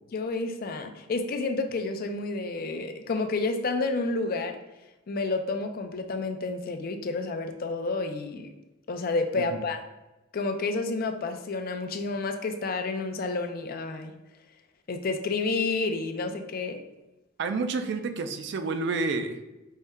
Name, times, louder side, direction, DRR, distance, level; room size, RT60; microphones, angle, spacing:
voice 1, 0.1-4.6 5.1-8.5 8.9-9.8 10.3-14.1 14.9-16.8, left 3 dB, 50° left, 6 dB, 0.4 m, -30 dB
voice 2, 9.3-9.7 17.4-19.4, right 3 dB, 60° right, 8 dB, 0.4 m, -29 dB
5.4 x 2.1 x 3.5 m, 1.0 s
head